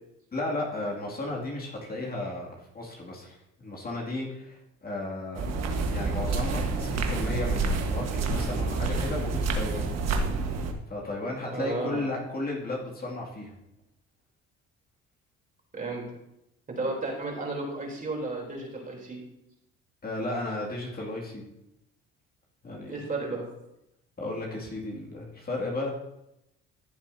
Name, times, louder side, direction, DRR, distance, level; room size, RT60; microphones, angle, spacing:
voice 1, 0.3-5.4 5.9-9.9 10.9-13.5 20.0-21.4 22.6-22.9 24.2-25.9, left 2 dB, 30° left, -3 dB, 2.4 m, -34 dB
sound 1, 5.4-10.7, right 3 dB, 60° right, 1.4 m, -28 dB
voice 2, 11.5-12.0 15.7-16.0 16.7-19.2 22.9-23.4, right 2 dB, 30° right, -1 dB, 3.4 m, -33 dB
14.5 x 7.3 x 2.7 m, 0.85 s
cardioid pair, 110°, 30 cm